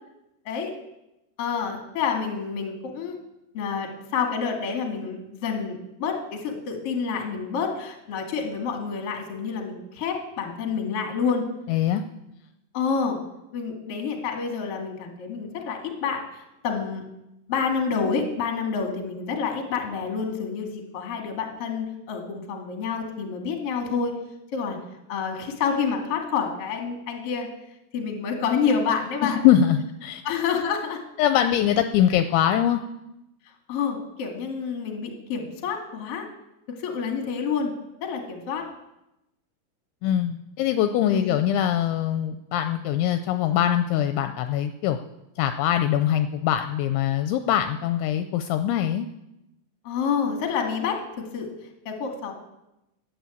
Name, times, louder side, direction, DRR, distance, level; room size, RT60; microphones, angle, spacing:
voice 1, 0.4-0.7 1.4-3.2 3.5-11.4 12.7-13.2 13.5-17.0 17.5-24.1 24.5-24.8 25.1-27.5 27.9-29.4 30.2-31.0 33.7-36.3 36.7-37.7 38.0-38.7 41.1-41.3 49.8-51.5 51.8-52.3, left 6 dB, 45° left, 3 dB, 2.1 m, -28 dB
voice 2, 11.7-12.0 29.2-30.2 31.2-32.8 40.0-45.0 45.4-49.1, left 10 dB, 80° left, 9 dB, 2.8 m, -23 dB
12.0 x 10.0 x 8.3 m, 0.91 s
omnidirectional pair, 5.7 m